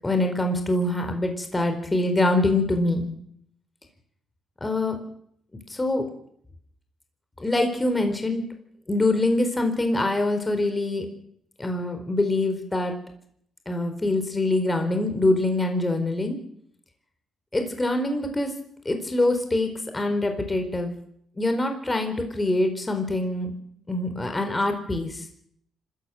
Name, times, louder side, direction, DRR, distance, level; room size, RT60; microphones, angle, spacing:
voice 1, 0.0-3.1 4.6-5.0 5.7-6.0 7.4-8.4 8.9-11.1 11.6-12.9 13.7-16.4 17.5-18.5 18.8-20.9 21.4-23.5 23.9-25.2, left 2 dB, 15° left, 6 dB, 4.4 m, -24 dB
25.5 x 14.0 x 9.2 m, 0.70 s
cardioid pair, 90°, 0 cm